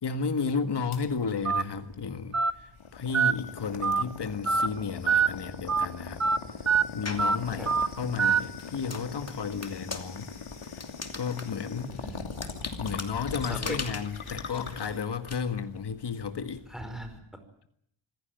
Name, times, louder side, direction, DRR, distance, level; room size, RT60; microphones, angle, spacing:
voice 1, 0.0-6.2 6.9-10.3 10.7-10.8 11.1-12.0 12.8-16.6, left 5 dB, 55° left, 9 dB, 1.8 m, -33 dB
sound 1, 0.9-17.2, left 5 dB, 80° left, 3.3 m, -41 dB
Telephone, 1.5-1.6 2.3-2.5 3.1-3.3 3.8-4.0 4.5-4.7 5.1-5.3 5.7-5.9 6.2-6.4 6.7-6.8 7.2-7.4 7.7-7.9 8.2-8.4, right 5 dB, 35° right, 1.1 m, -23 dB
sound 2, 7.0-7.4 7.9-15.4, left 3 dB, 30° left, 2.6 m, -41 dB
voice 2, 11.9-12.3 13.3-13.8 16.7-17.2, right 1 dB, ahead, 7 dB, 5.0 m, -39 dB
26.5 x 15.5 x 9.2 m, 0.72 s
wide cardioid pair, 100°, 48 cm